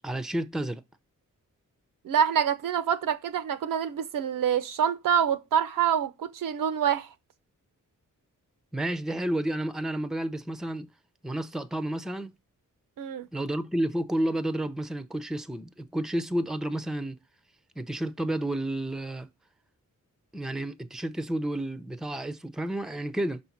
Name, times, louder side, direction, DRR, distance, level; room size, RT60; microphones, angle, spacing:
voice 1, 0.0-0.8 8.7-10.9 11.2-12.3 13.3-17.2 17.8-19.3 20.3-23.4, right 1 dB, ahead, 0.5 m, -31 dB
voice 2, 2.0-7.1 13.0-13.3, right 8 dB, 85° right, 0.7 m, -26 dB
5.5 x 4.1 x 5.8 m
wide cardioid pair, 90°, 32 cm